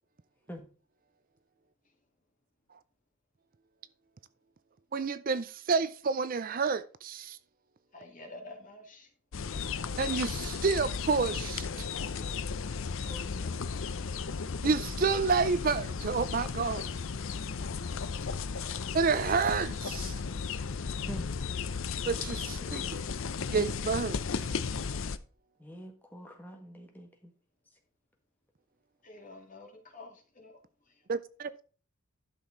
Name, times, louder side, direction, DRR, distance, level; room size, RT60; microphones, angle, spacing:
voice 1, 4.9-7.4 10.0-11.9 14.6-16.9 18.9-20.2 22.1-22.8 23.5-24.2 31.1-31.6, right 4 dB, 40° right, 0.4 m, -29 dB
voice 2, 7.9-9.1 12.8-13.8 18.6-18.9 29.0-30.6 30.9-31.0, left 2 dB, 35° left, 2.2 m, -50 dB
sound 1, 9.3-25.2, left 5 dB, 65° left, 0.6 m, -35 dB
voice 3, 22.4-22.9 25.6-27.3 27.7-27.8, equal, 10° left, 1.6 m, -46 dB
11.5 x 6.2 x 3.8 m
head